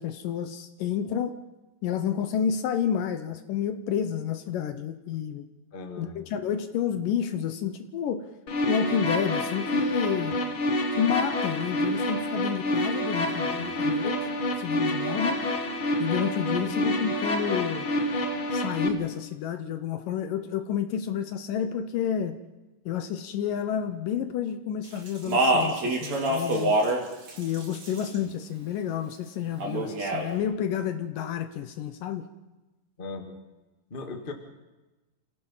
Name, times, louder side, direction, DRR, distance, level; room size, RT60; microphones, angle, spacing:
voice 1, 0.0-1.4 1.8-5.5 6.0-8.3 8.7-10.4 11.0-15.4 16.0-17.9 18.5-22.4 22.9-26.8 27.4-32.3, left 8 dB, 70° left, 10 dB, 2.4 m, -30 dB
voice 2, 5.7-6.2 13.4-13.7 16.6-16.8 33.0-33.4 33.9-34.3, left 3 dB, 25° left, 5 dB, 1.2 m, -38 dB
sound 1, 8.5-18.9, left 1 dB, 45° left, 1.9 m, -28 dB
Speech, 25.1-27.0 27.3-28.2 29.6-30.3, right 1 dB, 45° right, 4.4 m, -25 dB
28.0 x 17.0 x 5.7 m, 1.1 s
omnidirectional pair, 4.4 m